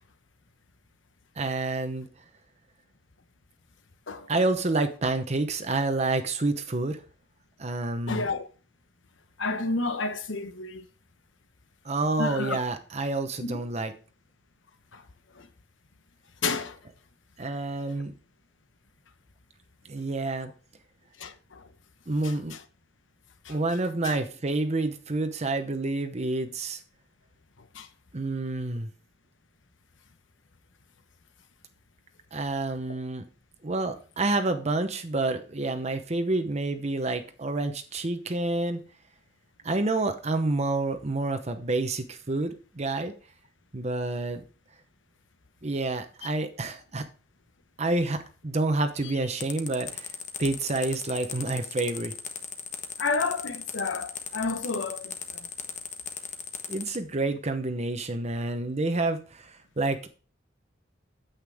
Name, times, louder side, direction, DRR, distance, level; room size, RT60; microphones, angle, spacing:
voice 1, 1.4-2.1 4.3-7.0 7.6-8.3 11.8-13.9 17.4-18.1 19.8-20.5 22.1-22.5 23.5-26.8 28.1-28.9 32.3-33.2 33.6-38.8 39.6-43.1 43.7-44.4 45.6-47.0 47.8-50.1 50.4-52.1 56.7-60.1, right 2 dB, 35° right, 0.8 m, -28 dB
voice 2, 8.1-8.5 9.4-10.8 12.2-12.6 13.4-13.6 14.9-15.0 15.4-15.5 16.4-16.8 21.2-21.6 22.2-22.3 23.4-23.5 24.0-24.1 27.7-27.9 46.2-46.3 53.0-55.5, left 3 dB, 85° left, 1.0 m, -31 dB
sound 1, 49.4-57.0, left 7 dB, 40° left, 1.1 m, -37 dB
9.5 x 8.1 x 3.5 m
head